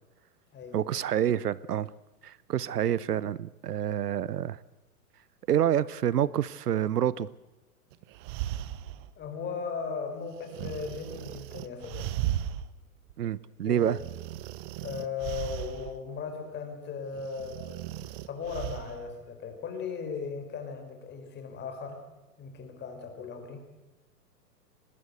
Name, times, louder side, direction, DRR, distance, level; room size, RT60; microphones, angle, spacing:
voice 1, 0.7-1.9 2.2-4.6 5.5-7.3 13.2-14.0, right 10 dB, 75° right, 21 dB, 0.8 m, -27 dB
sound 1, 7.9-9.1 10.5-12.7 13.1-13.2 13.8-16.0 17.1-19.0, right 13 dB, 35° right, 1.0 m, -36 dB
voice 2, 9.2-12.1 13.6-13.9 14.8-17.7 18.3-22.0 22.4-23.7, left 5 dB, 20° left, 6 dB, 4.7 m, -37 dB
23.5 x 20.0 x 8.1 m, 1.0 s
hypercardioid pair, 120°, 47 cm